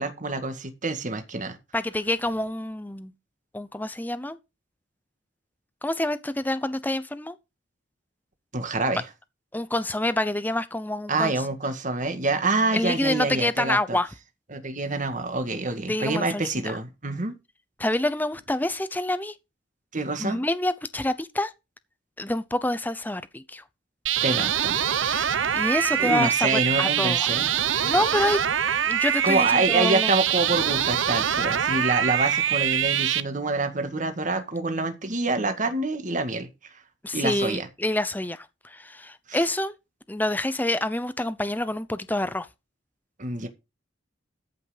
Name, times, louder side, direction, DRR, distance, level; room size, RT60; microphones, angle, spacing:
voice 1, 0.0-1.6 8.5-9.0 11.1-14.0 14.5-17.3 19.9-20.4 24.2-24.8 26.0-27.5 29.2-36.5 37.1-37.7 39.3-39.4 43.2-43.5, right 2 dB, 40° right, 1.9 m, -27 dB
voice 2, 1.7-3.1 3.5-4.4 5.8-7.4 9.5-11.3 12.7-14.1 15.9-16.8 17.8-19.3 20.2-21.5 22.2-23.6 25.0-27.3 27.8-28.4 28.9-30.1 37.0-39.7 40.1-42.5, left 1 dB, 10° left, 0.7 m, -27 dB
sound 1, 24.1-33.2, right 9 dB, 85° right, 0.8 m, -24 dB
13.5 x 5.9 x 5.1 m
head